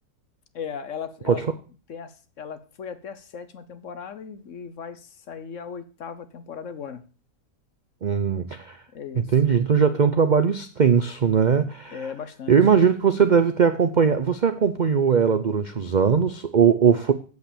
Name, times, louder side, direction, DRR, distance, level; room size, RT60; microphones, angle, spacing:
voice 1, 0.5-1.4 1.9-7.0 8.9-9.2 11.9-12.6, left 7 dB, 60° left, 1.1 m, -37 dB
voice 2, 8.0-8.8 9.2-12.1 12.5-17.1, right 6 dB, 55° right, 0.5 m, -20 dB
8.1 x 7.8 x 6.8 m
omnidirectional pair, 1.6 m